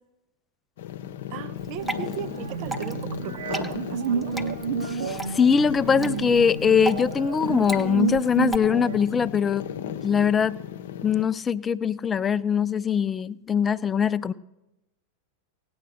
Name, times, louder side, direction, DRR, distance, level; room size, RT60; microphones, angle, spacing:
sound 1, 0.8-11.2, left 9 dB, 55° left, 0.8 m, -36 dB
voice 1, 1.3-4.4, right 11 dB, 45° right, 14 dB, 0.5 m, -37 dB
Water / Drip, 1.6-8.6, right 2 dB, ahead, 0.9 m, -36 dB
sound 2, 1.8-9.0, right 6 dB, 65° right, 1.3 m, -31 dB
voice 2, 4.9-9.6 10.0-10.6 11.0-14.3, left 6 dB, 20° left, 17 dB, 0.4 m, -22 dB
17.5 x 8.7 x 6.4 m, 0.94 s
figure-of-eight pair, 90°, 0 cm